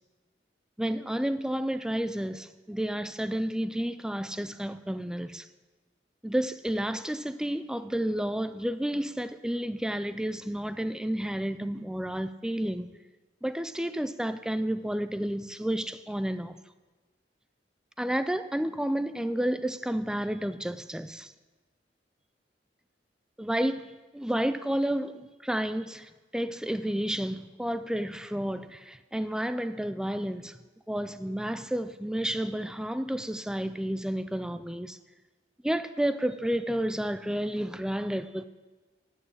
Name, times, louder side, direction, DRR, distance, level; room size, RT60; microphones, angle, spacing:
voice 1, 0.8-5.5 6.2-12.9 13.4-16.6 18.0-21.3 23.4-30.6 30.9-35.0 35.6-38.5, right 1 dB, 5° right, 0.3 m, -31 dB
9.1 x 6.4 x 8.5 m
head